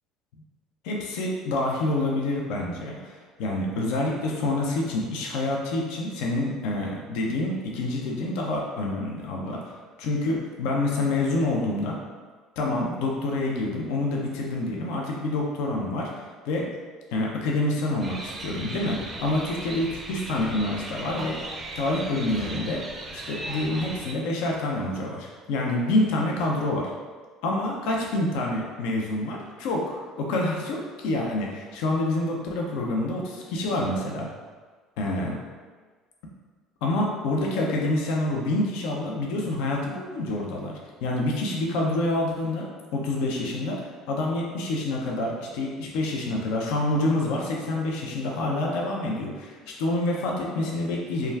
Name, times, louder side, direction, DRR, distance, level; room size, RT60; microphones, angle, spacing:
voice 1, 0.8-9.6 10.0-12.0 12.6-16.7 17.1-21.4 21.8-22.8 23.1-26.9 27.4-34.3 35.0-35.4 36.8-40.7 41.0-51.3, left 2 dB, 70° left, -1 dB, 0.4 m, -27 dB
sound 1, 18.0-24.1, right 2 dB, 35° right, 0.4 m, -37 dB
sound 2, 22.3-23.3, left 2 dB, 55° left, 1.0 m, -47 dB
2.2 x 2.2 x 3.3 m, 1.4 s
hypercardioid pair, 70°, 0 cm